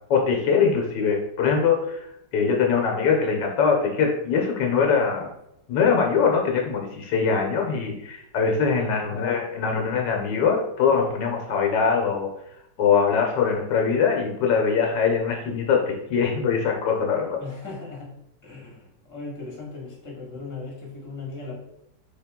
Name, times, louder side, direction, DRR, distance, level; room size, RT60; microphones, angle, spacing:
voice 1, 0.1-2.0 2.3-5.3 5.7-12.3 12.8-17.4, left 6 dB, 75° left, 1 dB, 1.3 m, -22 dB
voice 2, 9.1-9.4 17.4-18.1 18.4-21.5, left 3 dB, 10° left, -4 dB, 1.0 m, -37 dB
3.4 x 2.8 x 3.5 m, 0.80 s
omnidirectional pair, 2.0 m